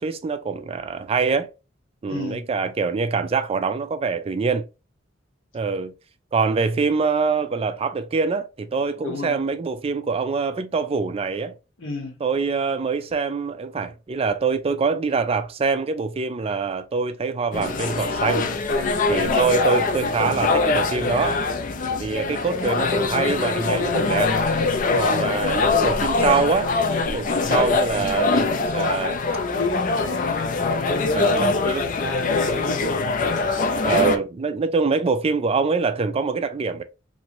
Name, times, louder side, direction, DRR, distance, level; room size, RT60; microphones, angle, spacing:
voice 1, 0.0-1.5 2.0-4.7 5.5-5.9 6.3-11.5 12.2-18.5 19.1-21.4 21.9-24.4 25.0-26.7 27.0-29.2 31.2-31.8 33.8-36.8, right 4 dB, 30° right, 0.3 m, -24 dB
voice 2, 2.1-2.5 9.0-9.4 11.8-12.2 18.5-19.5 25.2-25.5 29.2-30.4 30.9-31.7 32.0-33.1, left 2 dB, 75° left, 0.9 m, -30 dB
sound 1, 17.5-34.2, left 3 dB, 45° left, 0.4 m, -23 dB
3.0 x 2.6 x 2.8 m
head